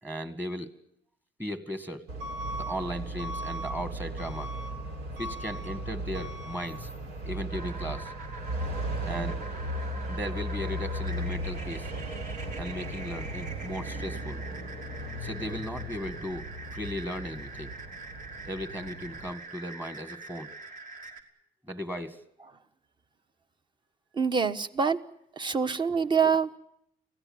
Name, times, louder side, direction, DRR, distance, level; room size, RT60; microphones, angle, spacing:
voice 1, 0.0-0.7 1.4-2.1 2.5-4.5 5.2-6.9 7.2-8.1 9.0-9.4 10.1-11.9 12.5-14.4 15.2-17.7 18.4-20.5 21.7-22.2, equal, 10° right, 10 dB, 1.7 m, -36 dB
Truck / Alarm, 2.1-19.3, right 1 dB, 80° right, 4.4 m, -36 dB
sound 1, 7.5-21.2, right 3 dB, 50° right, 3.0 m, -44 dB
voice 2, 24.1-25.0 25.4-26.6, right 6 dB, 25° right, 11 dB, 1.2 m, -25 dB
25.5 x 16.5 x 8.7 m, 0.75 s
cardioid pair, 110°, 17 cm